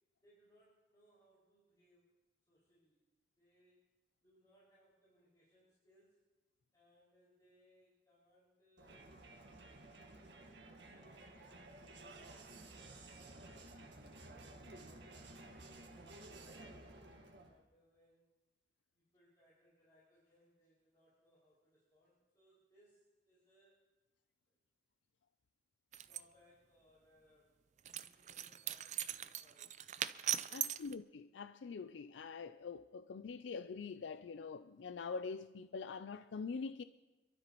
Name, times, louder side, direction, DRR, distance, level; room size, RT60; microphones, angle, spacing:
voice 1, 0.2-2.1 2.5-3.0 3.4-3.8 4.2-6.2 6.7-9.1 10.0-12.4 12.6-16.8 17.4-18.3 18.9-23.9 24.5-24.6 26.1-27.6 28.0-30.0 30.5-30.9, equal, 20° left, 5.6 m, -71 dB
Crowd, 8.8-17.6, right 2 dB, 75° right, 1.6 m, -54 dB
sound 1, 25.9-26.2 27.9-30.9, right 11 dB, 40° right, 0.4 m, -40 dB
voice 2, 30.5-36.8, left 5 dB, 85° left, 0.4 m, -44 dB
27.0 x 12.5 x 3.0 m
head